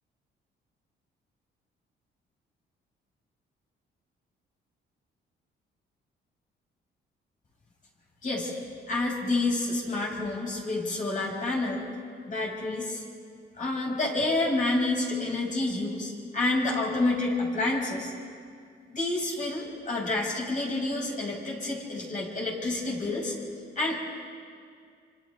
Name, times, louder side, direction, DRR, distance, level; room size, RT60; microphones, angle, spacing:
voice 1, 8.9-11.8 12.3-13.0 13.6-18.1 18.9-23.3 23.7-24.0, left 2 dB, 40° left, -3 dB, 6.8 m, -29 dB
27.0 x 26.5 x 3.7 m, 2.1 s
cardioid pair, 90°, 20 cm